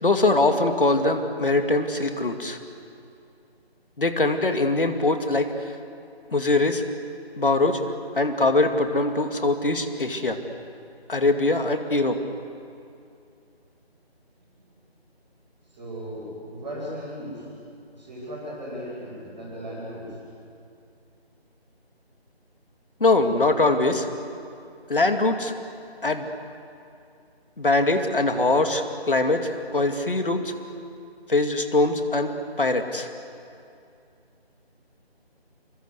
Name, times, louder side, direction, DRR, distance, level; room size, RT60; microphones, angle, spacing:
voice 1, 0.0-2.6 4.0-5.5 6.3-6.8 7.4-7.8 8.2-10.4 11.1-12.2 23.0-24.1 24.9-25.5 26.0-26.3 27.6-30.5 31.3-33.1, left 2 dB, 55° left, 6 dB, 2.4 m, -22 dB
voice 2, 15.7-17.4 17.9-20.2, equal, 5° right, -14 dB, 2.8 m, -36 dB
28.5 x 24.5 x 8.2 m, 2.5 s
figure-of-eight pair, 175°, 32 cm